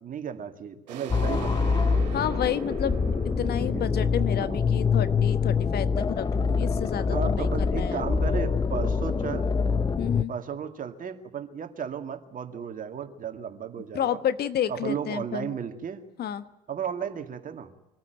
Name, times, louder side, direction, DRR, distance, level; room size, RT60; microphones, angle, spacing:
voice 1, 0.0-1.8 3.6-3.9 4.4-4.6 7.1-9.5 10.3-14.2 14.7-16.0 16.7-17.7, right 7 dB, 40° right, 7 dB, 2.2 m, -34 dB
sound 1, 0.9-6.4, right 10 dB, 80° right, 2.4 m, -43 dB
sound 2, 1.1-10.2, left 5 dB, 20° left, 0.7 m, -25 dB
voice 2, 2.1-2.9 3.4-8.0 9.1-9.3 10.0-10.3 13.9-15.5 16.2-16.5, left 10 dB, 50° left, 13 dB, 1.3 m, -30 dB
25.0 x 15.0 x 9.2 m, 0.97 s
hypercardioid pair, 65°, 21 cm